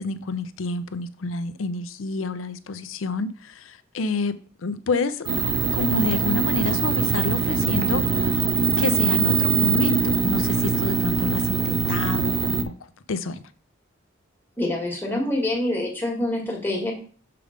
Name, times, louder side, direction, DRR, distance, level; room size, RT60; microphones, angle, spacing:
voice 1, 0.0-4.3 4.6-5.3 5.7-8.5 8.8-12.5 13.1-13.4, left 3 dB, 80° left, 0.5 m, -28 dB
sound 1, 5.3-12.6, right 4 dB, 80° right, 0.7 m, -22 dB
voice 2, 14.6-16.9, left 1 dB, 10° left, 1.7 m, -26 dB
6.8 x 3.4 x 5.0 m
head